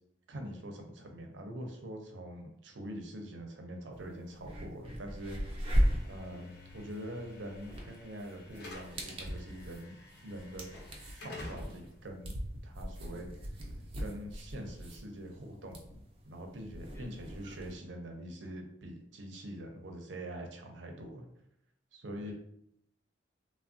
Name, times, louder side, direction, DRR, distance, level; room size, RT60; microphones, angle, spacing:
voice 1, 0.3-5.6 6.1-10.0 10.2-10.8 11.1-12.3 12.6-13.3 14.0-21.3 21.9-22.3, right 1 dB, 75° right, 4 dB, 0.5 m, -44 dB
sound 1, 3.9-4.0 4.4-17.7, equal, 30° right, 0.5 m, -37 dB
Slam / Alarm, 5.8-13.9, left 1 dB, 60° left, 0.9 m, -51 dB
Bass guitar, 6.2-12.4, left 5 dB, 85° left, 0.4 m, -60 dB
voice 2, 12.9-13.4 16.9-17.1 22.1-22.3, left 2 dB, 15° left, -1 dB, 0.6 m, -57 dB
3.3 x 2.1 x 2.5 m, 0.74 s
head